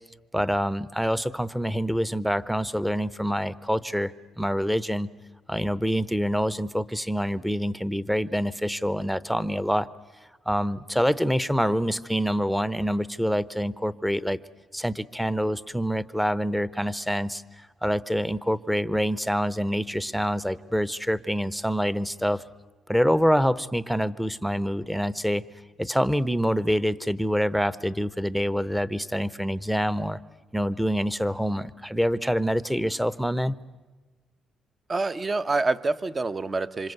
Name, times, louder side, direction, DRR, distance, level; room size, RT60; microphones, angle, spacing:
voice 1, 0.3-4.1 4.4-5.1 5.5-9.9 10.5-14.4 14.7-17.4 17.8-22.4 22.9-25.4 25.8-30.2 30.5-33.6, equal, ahead, 16 dB, 0.9 m, -26 dB
voice 2, 34.9-36.9, right 3 dB, 30° right, 12 dB, 0.9 m, -26 dB
27.5 x 25.5 x 8.1 m, 1.2 s
cardioid pair, 90°, 0 cm